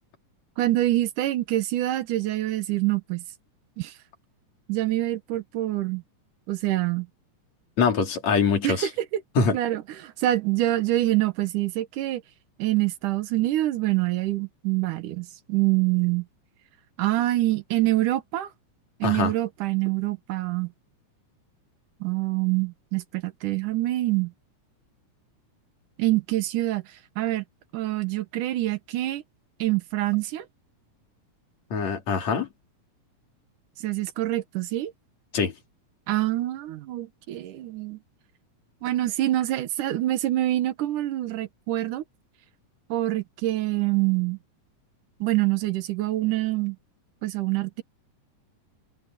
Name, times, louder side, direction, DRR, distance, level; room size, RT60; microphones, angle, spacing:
voice 1, 0.6-3.2 3.8-3.9 4.7-6.0 6.5-7.1 8.6-9.2 9.5-12.2 12.6-16.3 17.0-18.5 19.0-20.7 22.0-24.3 26.0-26.8 27.2-27.4 27.7-29.2 29.6-30.5 33.8-34.9 36.1-38.0 38.8-42.0 42.9-44.4 45.2-46.8 47.2-47.8, right 16 dB, 90° right, 2.6 m, -25 dB
voice 2, 7.8-8.9 9.4-9.6 19.0-19.3 31.7-32.5 35.3-35.5, left 5 dB, 60° left, 4.3 m, -23 dB
omnidirectional pair, 3.6 m